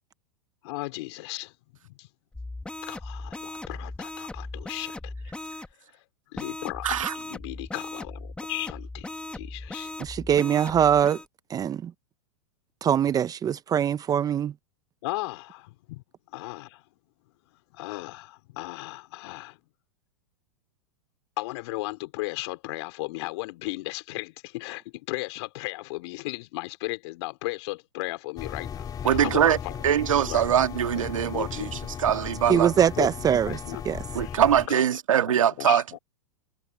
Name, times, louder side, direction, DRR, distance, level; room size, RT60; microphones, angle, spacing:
voice 1, 0.6-1.5 1.8-2.1 2.8-5.1 6.3-9.9 15.0-16.0 16.3-16.8 17.7-19.6 21.4-29.8 30.3-31.8 32.5-32.7 33.0-33.8 34.2-34.4 34.7-34.8 35.3-36.0, left 22 dB, 60° left, 4.2 m, -36 dB
sound 1, 2.3-5.7 6.4-11.3, left 2 dB, 5° left, 1.6 m, -38 dB
voice 2, 6.8-7.1 29.0-29.6 29.8-32.7 34.1-35.8, right 9 dB, 85° right, 1.9 m, -23 dB
voice 3, 10.0-11.2 11.5-11.9 12.8-14.5 32.5-33.6 33.9-34.0, right 9 dB, 20° right, 0.7 m, -23 dB
sound 2, 28.4-34.7, left 8 dB, 25° left, 2.6 m, -36 dB
hypercardioid pair, 115°, 16 cm